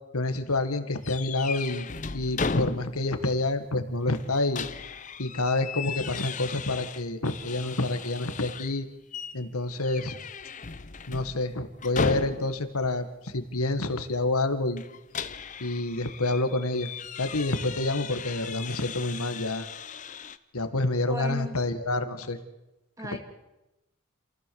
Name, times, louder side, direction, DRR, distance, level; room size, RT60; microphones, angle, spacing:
voice 1, 0.1-1.9 2.1-4.6 5.2-8.9 9.3-10.1 11.1-14.8 15.6-16.9 17.2-19.7 20.5-22.4 23.1-23.2, left 2 dB, 85° left, 9 dB, 1.8 m, -28 dB
sound 1, 1.0-3.2 3.5-3.6 4.1-8.8 9.1-9.4 9.8-12.7 14.8-20.4, left 5 dB, 35° left, 0.7 m, -36 dB
voice 2, 21.1-21.6 23.0-23.2, left 1 dB, 15° right, 5 dB, 2.2 m, -35 dB
28.0 x 15.5 x 7.1 m, 0.96 s
head